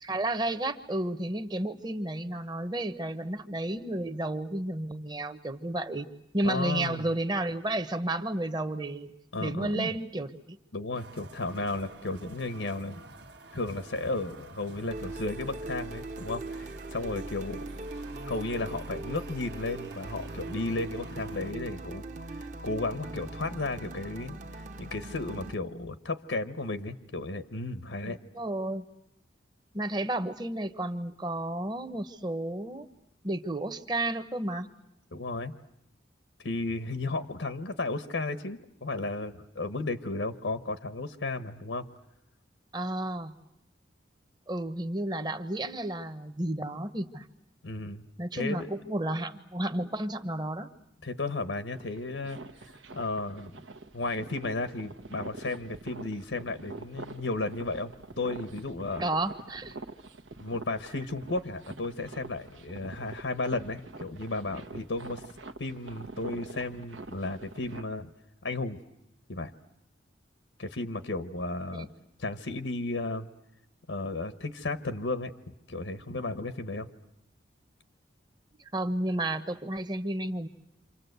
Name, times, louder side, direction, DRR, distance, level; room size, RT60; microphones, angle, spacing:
voice 1, 0.0-6.1 6.3-9.1 9.4-10.6 28.3-28.8 29.7-32.9 33.2-34.7 42.7-43.3 44.5-47.3 48.2-50.7 59.0-59.8 71.7-71.9 78.7-80.5, right 1 dB, 20° right, 11 dB, 1.0 m, -32 dB
voice 2, 6.4-7.1 9.3-10.0 10.7-13.0 13.5-17.6 18.2-22.0 22.4-28.2 35.1-35.6 36.4-41.9 47.6-48.0 48.3-48.7 51.0-52.4 52.9-53.5 53.9-59.0 60.4-65.2 65.6-68.1 68.4-68.8 69.3-69.5 70.6-71.9 72.2-73.3 73.9-75.3 75.7-76.9, left 2 dB, 80° left, 11 dB, 1.1 m, -34 dB
sound 1, 10.9-21.5, right 2 dB, 60° right, 1.3 m, -49 dB
sound 2, 14.9-25.6, right 2 dB, 40° right, 1.1 m, -40 dB
sound 3, 51.7-67.8, right 3 dB, 85° right, 1.3 m, -45 dB
28.5 x 26.0 x 8.1 m, 0.82 s
head